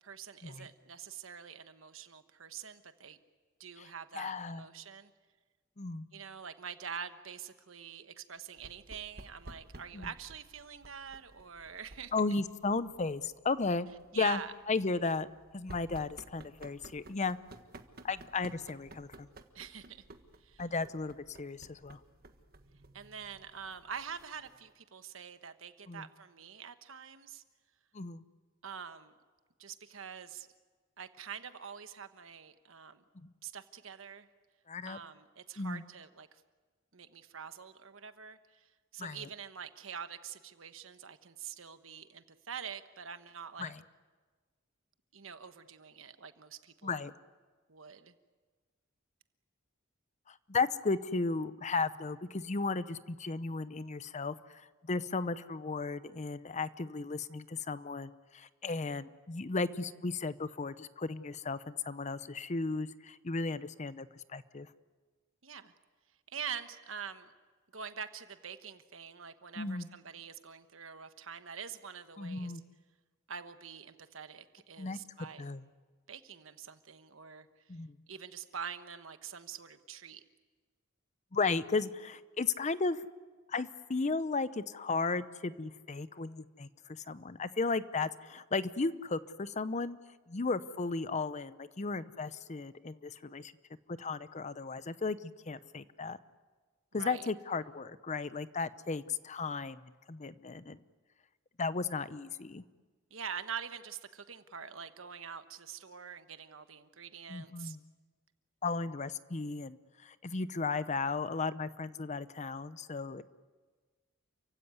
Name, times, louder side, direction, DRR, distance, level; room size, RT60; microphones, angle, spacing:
voice 1, 0.0-3.2 3.6-5.1 6.1-12.1 14.1-14.5 19.5-20.0 20.4-20.6 22.9-27.4 28.6-29.1 29.6-30.5 31.0-33.0 33.4-34.3 34.8-36.4 36.9-43.7 45.1-47.1 47.7-48.1 65.4-65.7 66.3-67.3 67.7-72.5 73.3-75.5 76.1-77.8 78.1-80.2 97.0-97.3 103.1-107.8, right 7 dB, 75° right, 10 dB, 1.2 m, -45 dB
voice 2, 4.1-4.7 5.8-6.1 9.9-10.1 12.1-13.9 14.1-14.4 14.7-15.3 15.5-17.4 18.0-19.3 20.6-22.0 25.9-26.1 27.9-28.2 33.2-33.3 34.7-35.0 35.6-35.8 39.0-39.3 43.6-43.8 46.8-47.1 50.3-64.7 69.6-69.9 72.2-72.6 74.8-75.0 75.4-75.7 77.7-78.0 81.3-83.1 83.5-90.0 90.3-93.5 93.9-96.2 96.9-99.8 100.1-100.8 101.6-102.6 107.3-107.8 108.6-113.2, left 4 dB, 35° left, 15 dB, 0.7 m, -35 dB
sound 1, 8.6-24.7, right 2 dB, 50° right, 1.4 m, -55 dB
29.0 x 16.0 x 9.6 m, 1.4 s
head